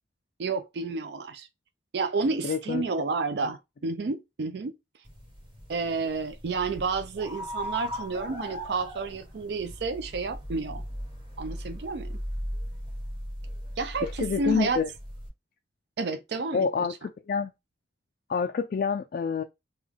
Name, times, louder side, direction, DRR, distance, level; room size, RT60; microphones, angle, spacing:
voice 1, 0.4-1.5 1.9-4.7 5.7-10.8 11.4-12.2 13.8-14.8 16.0-16.7, right 4 dB, 65° right, 0.4 m, -30 dB
voice 2, 2.4-2.8 3.4-3.5 14.0-14.9 16.5-16.9 17.3-17.5 18.3-19.4, left 5 dB, 50° left, 0.3 m, -27 dB
sound 1, 5.0-15.3, equal, 25° right, 1.2 m, -38 dB
3.5 x 2.2 x 3.4 m
head